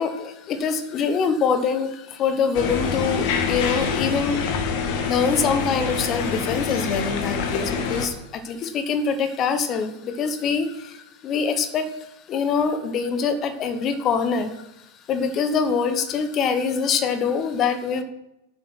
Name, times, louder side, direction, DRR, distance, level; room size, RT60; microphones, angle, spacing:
voice 1, 0.0-4.4 5.1-14.7 15.1-18.0, left 6 dB, 30° left, 9 dB, 1.2 m, -24 dB
sound 1, 2.5-8.1, left 5 dB, 45° left, 1.6 m, -26 dB
10.5 x 7.5 x 5.9 m, 0.91 s
figure-of-eight pair, 90°, 0 cm